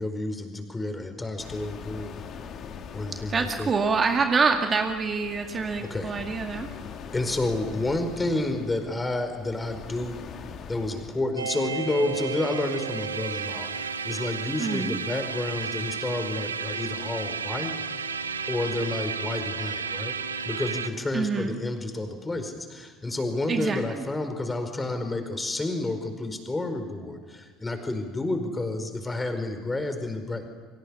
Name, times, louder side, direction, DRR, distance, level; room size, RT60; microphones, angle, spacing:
voice 1, 0.0-2.1 2.9-3.7 5.8-6.2 7.1-10.2 10.7-17.7 18.5-20.2 20.4-30.5, left 2 dB, 15° left, 7 dB, 4.8 m, -30 dB
sound 1, 1.4-11.2, left 6 dB, 40° left, 2.3 m, -42 dB
voice 2, 3.3-6.7 14.6-15.0 21.1-21.6 23.5-24.0, right 4 dB, 30° right, 4 dB, 2.2 m, -26 dB
sound 2, 11.4-20.9, right 6 dB, 80° right, 1.2 m, -32 dB
29.5 x 25.0 x 7.1 m, 1.5 s
figure-of-eight pair, 65°, 0 cm